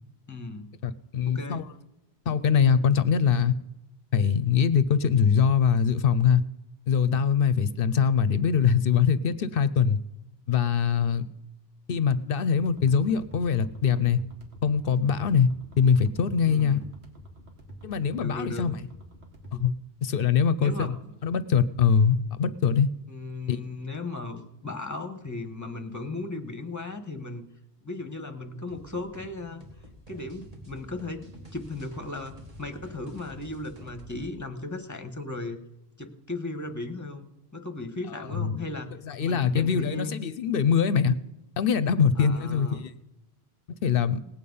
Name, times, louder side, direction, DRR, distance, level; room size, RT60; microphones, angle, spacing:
voice 1, 0.3-0.7 1.3-1.7 16.4-16.8 18.1-18.7 20.6-20.9 23.1-27.4 27.8-29.7 30.1-31.2 31.5-35.6 36.0-37.3 37.5-38.9 39.2-40.2 42.1-42.9, left 2 dB, 15° left, 7 dB, 1.2 m, -36 dB
voice 2, 0.8-1.6 2.3-3.5 4.1-6.4 6.9-10.0 10.5-11.2 11.9-14.2 14.6-15.5 15.8-16.8 17.8-18.8 19.5-19.7 20.0-20.9 21.2-22.9 23.5-23.6 38.4-38.6 39.1-41.2 41.6-42.9 43.8-44.2, left 7 dB, 65° left, 15 dB, 0.8 m, -23 dB
sound 1, 12.5-19.6, right 1 dB, 80° right, 2.3 m, -48 dB
sound 2, 28.7-34.3, left 1 dB, 35° right, 2.2 m, -48 dB
18.5 x 8.5 x 5.4 m, 0.92 s
omnidirectional pair, 1.1 m